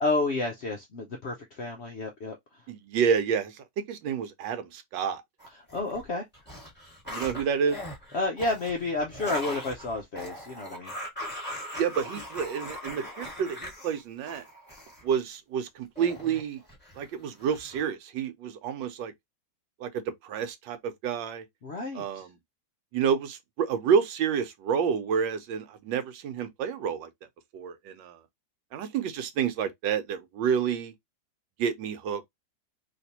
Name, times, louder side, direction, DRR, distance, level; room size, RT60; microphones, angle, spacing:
voice 1, 0.0-2.4 5.7-6.2 8.1-10.9 21.6-22.3, left 2 dB, 70° left, 0.6 m, -30 dB
voice 2, 2.7-5.2 7.1-7.8 11.8-14.4 15.0-16.6 17.0-19.1 19.8-21.4 21.9-22.3 22.9-27.1 27.5-28.2 28.7-30.9 31.6-32.2, right 7 dB, 90° right, 1.4 m, -29 dB
sound 1, 5.4-6.0 6.3-15.0 16.0-17.1 17.4-17.8, equal, 5° left, 1.4 m, -40 dB
3.3 x 2.9 x 2.8 m
omnidirectional pair, 1.9 m